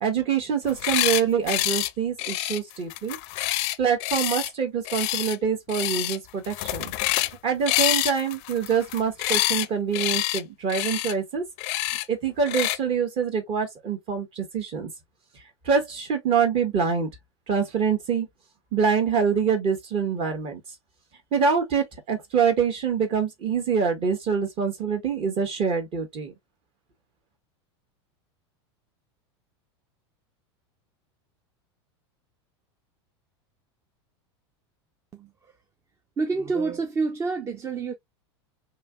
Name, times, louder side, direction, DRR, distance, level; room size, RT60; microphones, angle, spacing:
voice 1, 0.0-3.2 3.8-6.9 7.4-11.4 12.1-14.9 15.6-17.1 17.5-18.3 18.7-20.6 21.3-26.3, right 6 dB, 40° right, 1.4 m, -25 dB
sound 1, 0.6-1.2 1.5-1.9 2.2-4.5 4.8-5.4 5.7-6.2 6.4-7.3 7.7-9.7 9.9-10.4 10.7-11.1 11.6-12.0 12.5-12.8, left 17 dB, 50° left, 0.4 m, -26 dB
voice 2, 36.2-37.9, right 4 dB, 20° right, 0.5 m, -27 dB
3.2 x 2.9 x 2.3 m
hypercardioid pair, 115°, 15 cm